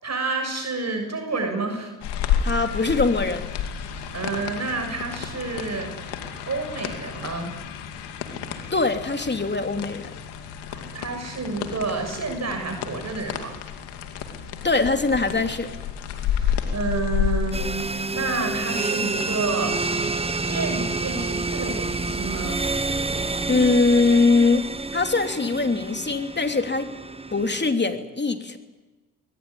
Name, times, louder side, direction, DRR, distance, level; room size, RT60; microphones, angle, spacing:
voice 1, 0.0-1.9 3.9-7.5 10.7-13.6 16.2-20.0 20.5-22.6, right 3 dB, 40° right, 5 dB, 7.2 m, -30 dB
sound 1, 2.0-20.1, left 8 dB, 90° left, 2.5 m, -31 dB
voice 2, 2.4-3.5 8.7-10.1 14.6-15.7 23.5-24.7 24.9-26.9 27.3-28.6, left 3 dB, 25° left, 6 dB, 3.1 m, -22 dB
sound 2, 17.5-27.7, right 3 dB, 15° right, 1.4 m, -28 dB
22.0 x 19.5 x 9.9 m, 1.2 s
supercardioid pair, 60°, 39 cm